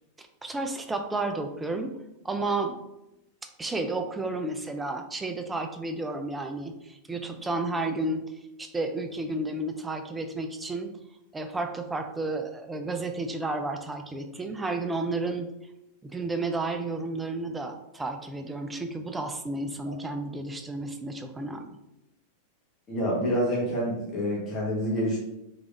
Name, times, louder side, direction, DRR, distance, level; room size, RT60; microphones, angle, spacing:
voice 1, 0.4-1.9 2.2-2.8 3.6-8.2 8.6-10.9 11.3-15.5 16.0-21.8, right 2 dB, 10° right, 6 dB, 0.4 m, -32 dB
voice 2, 22.9-25.2, equal, 25° left, -5 dB, 1.1 m, -27 dB
3.3 x 3.2 x 2.5 m, 0.89 s
figure-of-eight pair, 90°, 0 cm